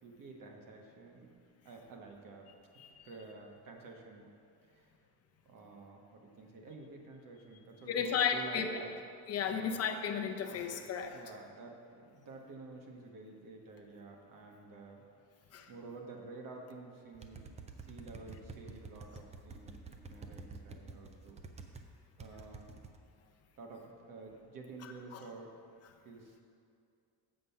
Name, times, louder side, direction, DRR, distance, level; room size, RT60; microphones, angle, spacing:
voice 1, 0.0-1.3 1.6-2.5 3.0-4.3 4.6-4.9 5.4-8.9 9.4-9.7 10.7-10.8 11.1-15.0 15.7-17.4 17.8-21.4 22.2-22.8 23.6-25.5 26.0-26.4, right 3 dB, 50° right, 1 dB, 1.3 m, -50 dB
voice 2, 7.9-8.7 9.3-11.2 15.5-15.7 25.1-25.2, left 7 dB, 35° left, 4 dB, 0.7 m, -34 dB
sound 1, 17.1-21.9 22.2-23.0, right 4 dB, 20° right, 0.3 m, -49 dB
7.8 x 6.8 x 5.7 m, 2.4 s
cardioid pair, 155°, 42 cm